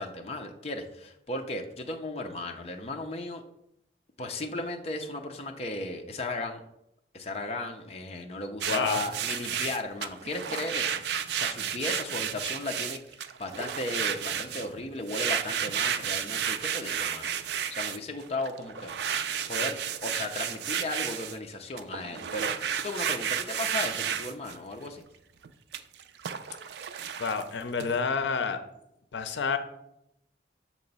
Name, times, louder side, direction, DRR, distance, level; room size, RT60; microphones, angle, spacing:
voice 1, 0.0-3.4 4.2-6.6 7.1-17.3 17.7-19.0 19.5-25.0, left 2 dB, 35° left, 3 dB, 0.5 m, -36 dB
sound 1, 8.6-14.8 15.1-21.4 21.8-24.6 25.4-28.0, right 8 dB, 70° right, 0.4 m, -32 dB
voice 2, 8.7-9.0 27.2-28.6 29.1-29.6, left 5 dB, 80° left, 9 dB, 0.5 m, -29 dB
6.7 x 3.0 x 5.3 m, 0.80 s
head